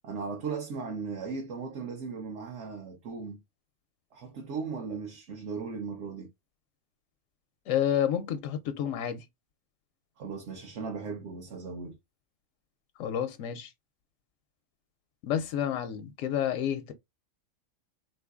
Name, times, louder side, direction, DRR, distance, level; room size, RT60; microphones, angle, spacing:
voice 1, 0.0-3.4 4.1-6.3 10.2-12.0, right 5 dB, 70° right, 1.0 m, -37 dB
voice 2, 7.7-9.2 13.0-13.7 15.2-16.9, left 9 dB, 85° left, 1.0 m, -29 dB
3.7 x 3.0 x 2.3 m
omnidirectional pair, 1.3 m